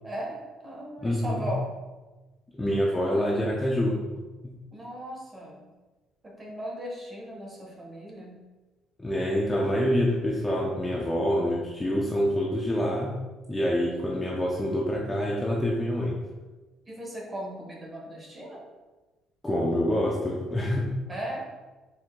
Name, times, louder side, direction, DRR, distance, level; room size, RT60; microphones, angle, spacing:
voice 1, 0.0-1.7 4.7-5.6 6.2-8.4 16.9-18.6 21.1-21.4, equal, 15° right, -1 dB, 0.8 m, -37 dB
voice 2, 1.0-1.5 2.5-4.5 9.0-13.1 13.5-16.2 19.4-20.9, equal, 10° left, -4 dB, 0.4 m, -26 dB
4.5 x 2.6 x 3.6 m, 1.2 s
cardioid pair, 175°, 0 cm